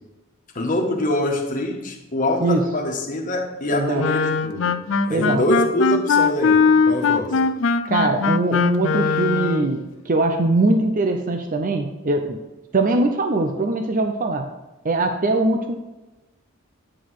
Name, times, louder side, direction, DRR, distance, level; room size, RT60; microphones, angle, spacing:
voice 1, 0.5-4.7 5.1-7.4, left 1 dB, 40° left, 1 dB, 1.5 m, -24 dB
voice 2, 3.7-4.0 5.1-5.4 7.9-12.4 12.7-14.5 14.8-15.7, right 2 dB, 40° right, 5 dB, 0.6 m, -21 dB
Wind instrument woodwind instrument, 4.0-9.7, left 5 dB, 60° left, 0.5 m, -20 dB
10.0 x 6.1 x 4.8 m, 1.1 s
head